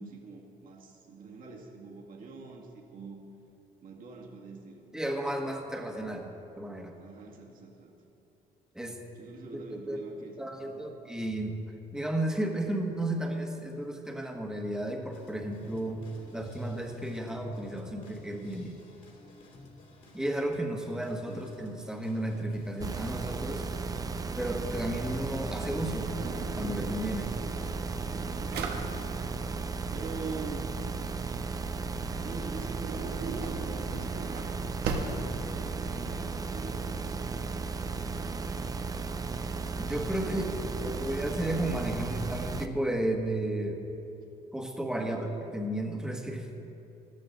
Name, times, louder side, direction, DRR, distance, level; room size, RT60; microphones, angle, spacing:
voice 1, 0.0-3.2 3.8-4.9 7.0-8.0 9.1-10.8 21.3-21.5 28.1-29.2 29.9-30.7 32.2-38.9 40.2-41.3 45.0-45.3, right 4 dB, 55° right, -1 dB, 2.1 m, -45 dB
voice 2, 4.9-7.0 8.7-9.0 9.7-11.6 11.9-16.0 16.3-18.8 20.1-23.7 24.4-26.1 26.6-27.3 39.8-40.4 40.8-43.8 44.5-45.3 45.5-46.5, right 1 dB, 5° right, 2 dB, 1.4 m, -33 dB
sound 1, 15.1-23.2, left 2 dB, 50° left, 2.3 m, -52 dB
sound 2, 22.8-42.7, right 4 dB, 20° right, 0.5 m, -35 dB
Drawer open or close, 26.0-35.9, right 4 dB, 75° right, 1.3 m, -40 dB
14.0 x 13.0 x 3.9 m, 2.9 s
cardioid pair, 110°, 17 cm